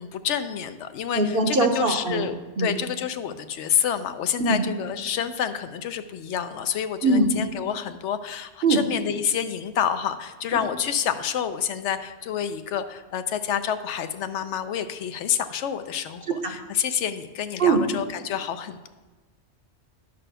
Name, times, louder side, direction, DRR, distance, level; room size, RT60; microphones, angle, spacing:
voice 1, 0.0-18.9, left 8 dB, 75° left, 10 dB, 0.9 m, -28 dB
voice 2, 1.1-2.3 2.6-2.7 4.4-4.6 7.0-7.3 8.6-8.8 16.3-16.5 17.6-17.8, right 3 dB, 50° right, 4 dB, 1.0 m, -21 dB
11.0 x 4.1 x 6.6 m, 1.2 s
omnidirectional pair, 1.2 m